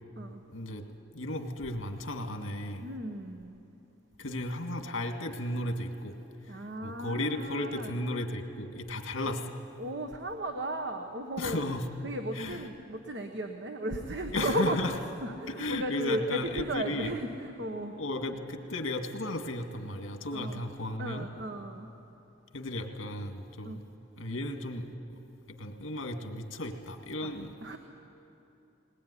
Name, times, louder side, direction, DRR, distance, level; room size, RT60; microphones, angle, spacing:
voice 1, 0.5-0.9 1.1-2.9 4.2-6.2 6.4-9.6 11.4-11.9 12.3-12.7 14.3-14.9 15.5-17.1 18.0-21.3 22.5-23.8 24.2-25.2 25.5-27.5, left 1 dB, 70° left, 6 dB, 2.1 m, -35 dB
voice 2, 2.8-3.6 6.5-7.9 9.8-11.7 12.0-14.8 15.2-18.0 20.1-20.6 21.0-21.9 23.6-23.8 27.2-27.3 27.6-27.8, right 1 dB, 55° right, 5 dB, 1.1 m, -35 dB
20.5 x 20.0 x 9.9 m, 2.9 s
head